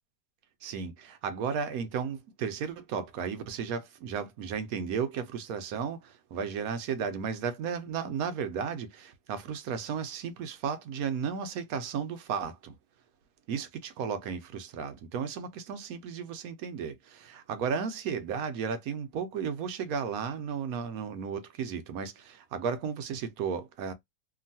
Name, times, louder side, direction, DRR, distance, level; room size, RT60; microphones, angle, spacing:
voice 1, 0.6-12.7 13.5-23.9, right 6 dB, 70° right, 1.0 m, -34 dB
2.9 x 2.6 x 2.6 m
omnidirectional pair, 1.7 m